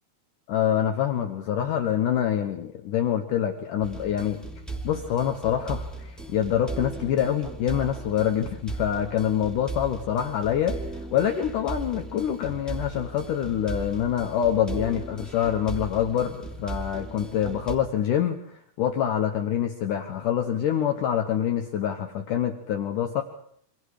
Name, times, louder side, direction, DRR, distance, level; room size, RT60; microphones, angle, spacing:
voice 1, 0.5-4.4 4.8-10.8 11.1-23.2, left 10 dB, 65° left, 6 dB, 2.6 m, -26 dB
sound 1, 3.8-17.7, right 2 dB, ahead, 2.6 m, -37 dB
28.0 x 25.0 x 5.0 m, 0.67 s
omnidirectional pair, 4.3 m